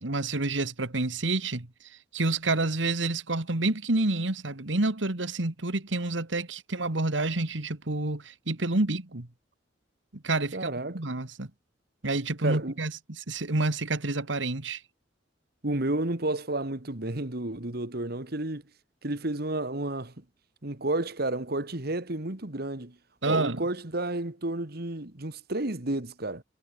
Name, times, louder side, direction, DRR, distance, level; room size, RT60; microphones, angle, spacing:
voice 1, 0.0-9.3 10.1-11.5 12.0-14.8 23.2-23.6, right 2 dB, 80° right, 1.9 m, -29 dB
voice 2, 10.5-11.0 12.4-12.7 15.6-18.6 19.0-20.2 20.6-23.0 23.3-26.4, right 2 dB, 55° right, 2.1 m, -31 dB
head